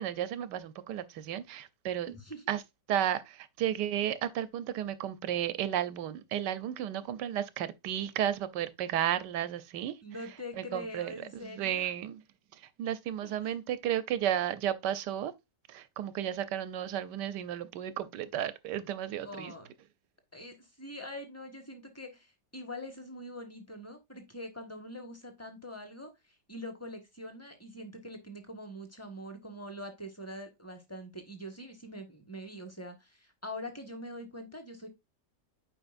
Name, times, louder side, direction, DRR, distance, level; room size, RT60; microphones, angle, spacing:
voice 1, 0.0-2.1 2.5-2.6 2.9-10.0 10.6-11.2 11.4-12.2 12.5-15.3 15.7-19.5, right 11 dB, 85° right, 1.3 m, -33 dB
voice 2, 2.1-2.4 10.0-11.9 13.2-13.5 19.2-19.7 20.3-34.9, left 1 dB, 10° left, 1.3 m, -44 dB
8.9 x 4.9 x 2.5 m
omnidirectional pair, 1.8 m